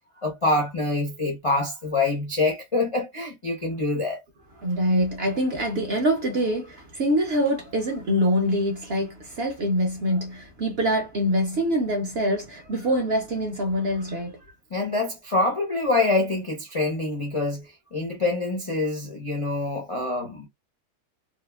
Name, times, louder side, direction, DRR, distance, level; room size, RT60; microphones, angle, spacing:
voice 1, 0.2-4.2 14.7-20.5, left 2 dB, 55° left, 0.3 m, -25 dB
voice 2, 4.6-14.4, equal, 60° right, 0.6 m, -24 dB
2.8 x 2.3 x 2.2 m
omnidirectional pair, 1.6 m